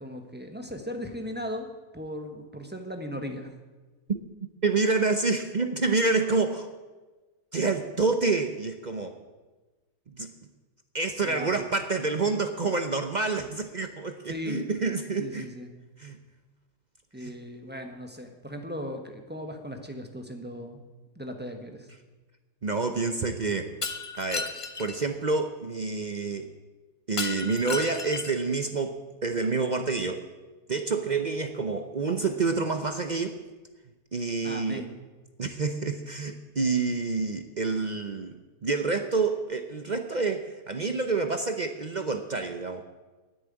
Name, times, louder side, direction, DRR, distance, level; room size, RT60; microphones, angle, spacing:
voice 1, 0.0-1.7 1.9-3.5 11.2-11.6 14.3-14.6 15.2-15.7 17.1-20.8 21.1-21.9 34.4-34.9, equal, 5° right, 5 dB, 1.1 m, -37 dB
voice 2, 4.6-6.7 7.5-9.2 10.1-10.3 10.9-15.5 16.0-16.2 17.2-17.3 22.6-23.7 24.2-24.5 24.8-26.5 27.1-30.2 30.7-33.4 34.1-34.9 35.4-42.8, right 4 dB, 45° right, 7 dB, 0.6 m, -28 dB
Shatter, 23.8-25.0 27.2-28.5, left 4 dB, 35° left, 0.5 m, -33 dB
9.9 x 9.6 x 8.9 m, 1.2 s
omnidirectional pair, 1.7 m